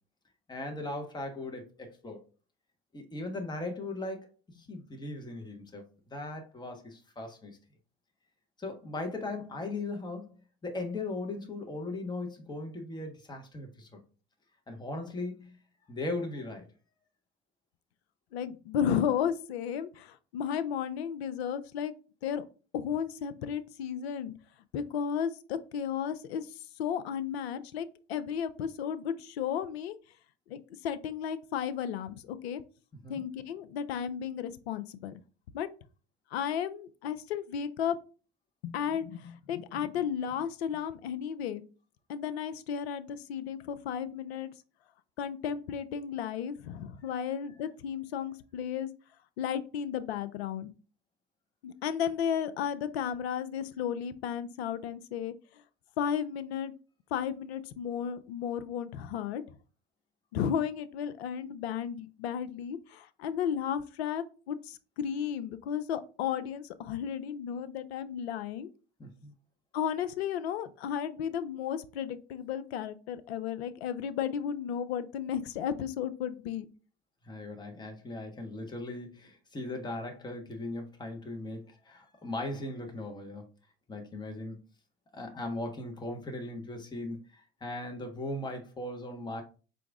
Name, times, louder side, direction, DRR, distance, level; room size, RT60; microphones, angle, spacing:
voice 1, 0.5-2.2 2.9-4.3 4.5-5.8 6.1-7.6 8.6-14.0 14.7-15.6 15.9-16.7 33.0-33.2 69.0-69.3 77.2-83.5 83.9-84.6 85.1-89.4, left 2 dB, 15° left, 3 dB, 1.1 m, -38 dB
voice 2, 18.3-21.9 22.2-22.4 22.7-24.3 24.7-30.0 30.5-32.6 33.1-35.2 35.5-35.7 36.3-38.0 38.6-41.6 42.1-44.5 45.2-48.9 49.4-50.7 51.6-55.6 56.0-56.7 57.1-59.4 60.3-68.7 69.7-76.7, left 8 dB, 80° left, 13 dB, 0.5 m, -34 dB
4.7 x 2.5 x 3.5 m, 0.36 s
hypercardioid pair, 75°, 31 cm